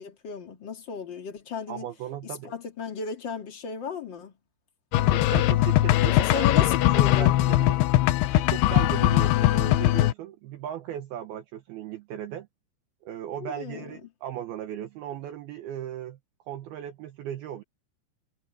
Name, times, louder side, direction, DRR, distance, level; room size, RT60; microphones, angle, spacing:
voice 1, 0.0-1.9 2.2-4.3 6.1-7.4 9.1-9.4 13.4-14.0, left 6 dB, 40° left, 1.8 m, -35 dB
voice 2, 1.7-2.5 5.0-6.7 7.2-7.8 8.3-12.5 13.1-16.2 16.5-17.6, right 11 dB, 70° right, 2.6 m, -37 dB
sound 1, 4.9-10.1, left 15 dB, 75° left, 2.6 m, -21 dB
omnidirectional pair, 5.3 m